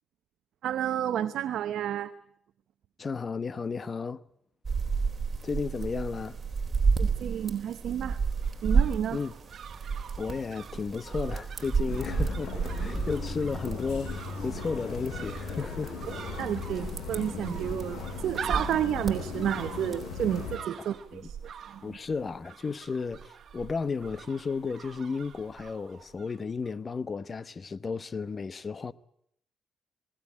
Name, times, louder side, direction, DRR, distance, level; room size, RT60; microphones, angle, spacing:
voice 1, 0.6-2.1 7.0-8.2 8.6-9.2 16.1-21.4 21.7-22.0, right 10 dB, 75° right, 0.8 m, -31 dB
voice 2, 3.0-4.2 5.4-6.4 9.1-9.4 10.2-16.1 20.8-21.3 21.8-28.9, left 5 dB, 35° left, 0.9 m, -33 dB
sound 1, 4.6-20.5, right 5 dB, 30° right, 4.0 m, -32 dB
sound 2, 8.2-26.4 26.6-26.7, right 8 dB, 55° right, 1.9 m, -44 dB
sound 3, 11.9-20.6, left 5 dB, 80° left, 7.2 m, -38 dB
20.5 x 18.0 x 9.9 m
cardioid pair, 90°, 0 cm